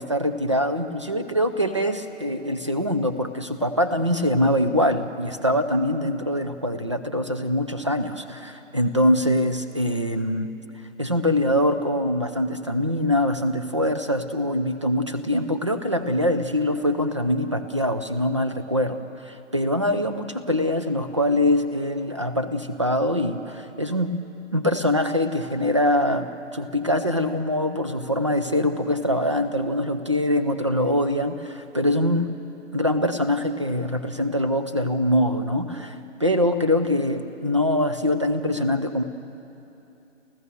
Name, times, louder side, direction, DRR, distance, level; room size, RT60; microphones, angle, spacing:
voice 1, 0.0-10.5 11.0-24.2 24.5-32.3 32.7-39.0, left 1 dB, 25° right, 8 dB, 0.6 m, -23 dB
29.0 x 15.0 x 6.9 m, 2.8 s
hypercardioid pair, 170°, 38 cm